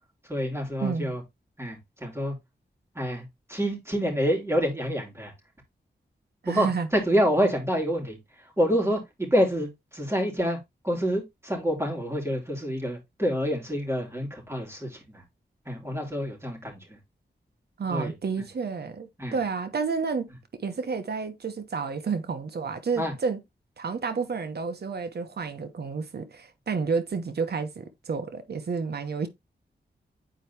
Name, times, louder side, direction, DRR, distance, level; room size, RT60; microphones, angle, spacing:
voice 1, 0.3-1.2 1.6-2.3 2.9-5.3 6.5-6.7 6.9-8.2 8.6-10.6 10.8-15.0 15.7-16.8 17.9-18.1 19.2-19.3 23.0-23.1, equal, 15° right, 3.2 m, -27 dB
voice 2, 0.8-1.1 6.4-6.9 17.8-20.3 20.6-23.4 23.8-29.3, right 5 dB, 65° right, 1.1 m, -30 dB
9.1 x 4.6 x 2.9 m
wide cardioid pair, 70°, 18 cm